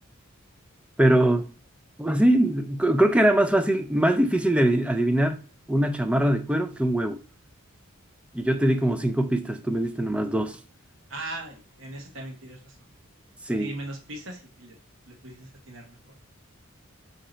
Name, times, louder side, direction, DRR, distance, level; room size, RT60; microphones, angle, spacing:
voice 1, 1.0-1.5 2.0-5.4 5.7-7.2 8.3-10.6 13.5-13.7, right 1 dB, 5° right, 0.3 m, -22 dB
voice 2, 11.1-12.8 13.6-14.8 15.1-16.1, right 2 dB, 60° right, 0.9 m, -39 dB
4.2 x 2.7 x 3.9 m
head